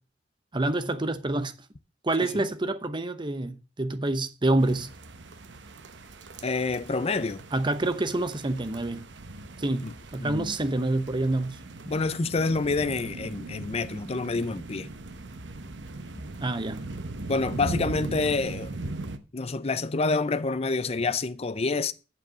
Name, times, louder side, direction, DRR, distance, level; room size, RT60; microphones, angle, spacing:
voice 1, 0.5-1.5 2.0-4.9 7.5-9.0 9.6-11.6 16.4-16.8, right 2 dB, 25° right, 0.8 m, -27 dB
sound 1, 4.6-19.2, right 2 dB, 85° right, 1.0 m, -39 dB
voice 2, 6.4-7.4 9.8-9.9 10.2-10.6 11.9-14.9 17.3-18.7 19.3-21.9, left 3 dB, 35° left, 0.6 m, -28 dB
7.9 x 7.3 x 6.2 m
head